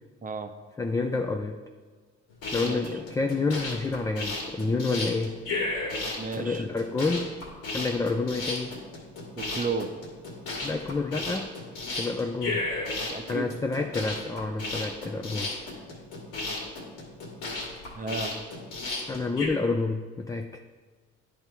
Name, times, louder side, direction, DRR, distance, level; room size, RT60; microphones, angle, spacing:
voice 1, 0.2-0.5 2.5-2.8 6.2-6.6 9.4-9.9 13.1-13.5 17.9-18.3, right 4 dB, 30° right, 7 dB, 0.6 m, -33 dB
voice 2, 0.8-1.6 2.5-5.4 6.4-7.4 7.7-8.8 10.6-11.6 12.0-12.7 13.3-15.5 19.1-20.6, left 3 dB, 10° left, 5 dB, 0.3 m, -29 dB
sound 1, 2.3-19.5, left 2 dB, 90° left, 2.0 m, -34 dB
10.0 x 3.4 x 4.4 m, 1.5 s
cardioid pair, 90°, 30 cm